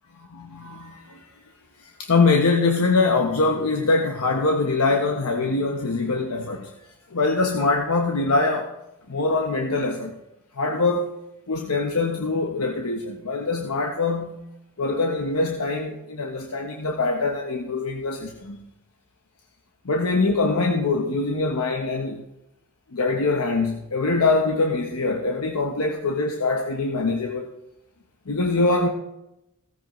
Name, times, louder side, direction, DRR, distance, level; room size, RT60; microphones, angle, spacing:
voice 1, 0.3-1.3 1.8-6.7 7.1-8.7 9.1-10.1 10.6-11.1 11.5-14.4 14.8-18.6 19.8-22.2 22.9-27.5 28.3-28.9, left 3 dB, 90° left, 1.0 m, -23 dB
16.5 x 14.0 x 3.1 m
head